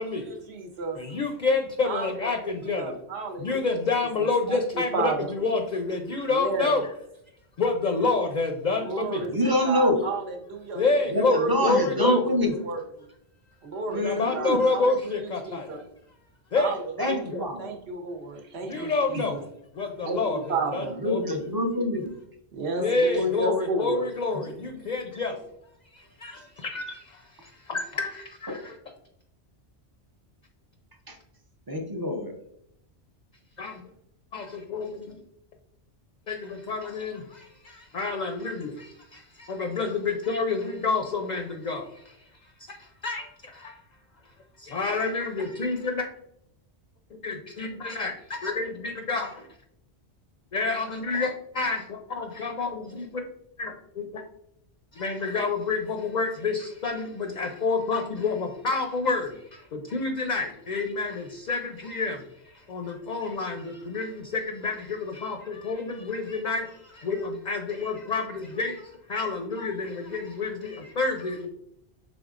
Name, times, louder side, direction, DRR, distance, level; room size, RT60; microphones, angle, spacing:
voice 1, 0.0-1.0 1.8-3.7 4.2-5.3 6.3-6.8 8.8-10.8 11.2-11.5 12.0-12.2 12.6-13.1 13.6-15.0 15.4-15.8 16.6-19.4 20.0-21.0 22.5-24.1, right 3 dB, 75° right, 3 dB, 1.1 m, -32 dB
voice 2, 1.0-2.9 3.4-6.9 7.6-9.3 10.7-12.3 14.0-15.9 16.5-16.7 17.0-17.5 18.6-19.4 19.7-21.4 22.8-25.4 25.8-28.8 33.6-33.8 34.3-35.2 36.3-43.8 44.2-44.3 44.6-46.1 47.2-49.5 50.5-53.2 53.6-54.2 54.9-71.5, left 3 dB, 55° left, 4 dB, 0.5 m, -29 dB
voice 3, 9.3-10.0 11.1-12.5 13.9-14.6 17.0-17.6 19.2-19.3 21.0-22.1 28.5-28.6 31.1-31.2 31.7-32.3, left 1 dB, 25° right, 4 dB, 0.5 m, -26 dB
5.2 x 3.6 x 2.4 m, 0.77 s
omnidirectional pair, 1.1 m